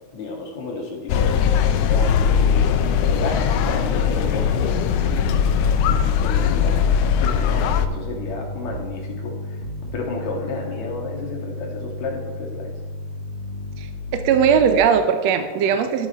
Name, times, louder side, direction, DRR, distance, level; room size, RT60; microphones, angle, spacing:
voice 1, 0.1-5.5 6.2-6.9 7.2-9.4 9.9-12.7 15.4-15.8, left 3 dB, 65° left, 0 dB, 2.9 m, -32 dB
sound 1, 1.1-7.9, left 8 dB, 80° left, 1.4 m, -20 dB
sound 2, 1.3-14.8, left 1 dB, 45° left, 0.8 m, -33 dB
voice 2, 14.1-16.1, right 7 dB, 70° right, 7 dB, 1.8 m, -18 dB
12.5 x 8.6 x 4.2 m, 1.4 s
omnidirectional pair, 3.5 m